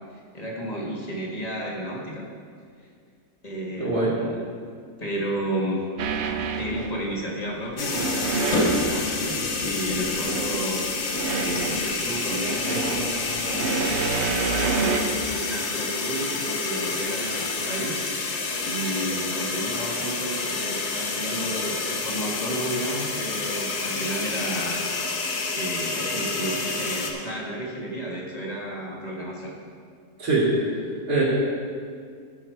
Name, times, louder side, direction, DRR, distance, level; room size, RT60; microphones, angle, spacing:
voice 1, 0.3-2.2 3.4-4.4 5.0-5.8 6.6-13.7 14.5-24.8 25.1-29.5, right 1 dB, 25° left, -3 dB, 1.7 m, -32 dB
voice 2, 3.8-4.1 30.2-31.2, right 2 dB, 75° right, -10 dB, 2.7 m, -23 dB
sound 1, 6.0-7.1 7.7-9.2 9.8-10.7 11.1-15.1, right 4 dB, 60° right, 0.8 m, -28 dB
sound 2, 7.8-27.1, left 3 dB, 60° left, 1.3 m, -28 dB
13.5 x 5.9 x 4.6 m, 2.2 s
omnidirectional pair, 1.7 m